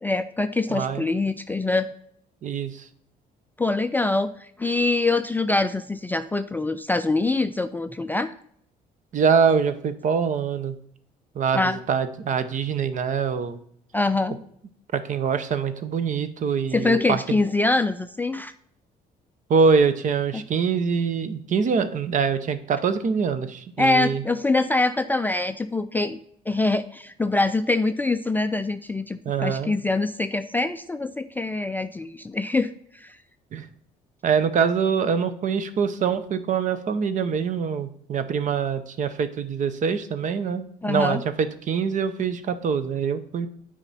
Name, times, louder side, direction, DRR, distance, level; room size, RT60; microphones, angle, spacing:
voice 1, 0.0-1.9 3.6-8.3 11.5-11.8 13.9-14.4 16.7-18.5 20.3-20.4 23.8-26.2 26.5-33.2 40.8-41.2, left 2 dB, 10° left, 9 dB, 0.3 m, -24 dB
voice 2, 0.7-1.0 2.4-2.8 9.1-10.7 11.3-13.6 14.9-17.2 19.5-24.2 29.2-29.7 33.5-33.7 34.2-43.5, right 6 dB, 50° right, 11 dB, 0.8 m, -24 dB
9.0 x 5.0 x 4.2 m, 0.66 s
cardioid pair, 110°, 17 cm